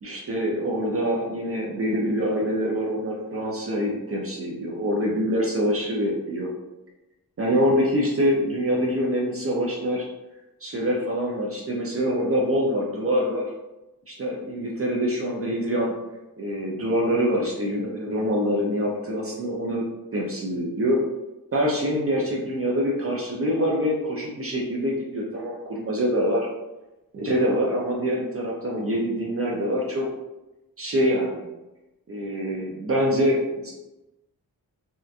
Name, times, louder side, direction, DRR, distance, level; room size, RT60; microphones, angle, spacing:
voice 1, 0.0-6.5 7.4-10.1 10.6-13.5 14.1-15.9 16.4-19.8 20.1-21.0 21.5-26.5 27.1-30.1 30.8-31.4 32.1-33.7, equal, 40° right, -3 dB, 0.4 m, -25 dB
2.7 x 2.2 x 2.4 m, 1.0 s
wide cardioid pair, 180°, 38 cm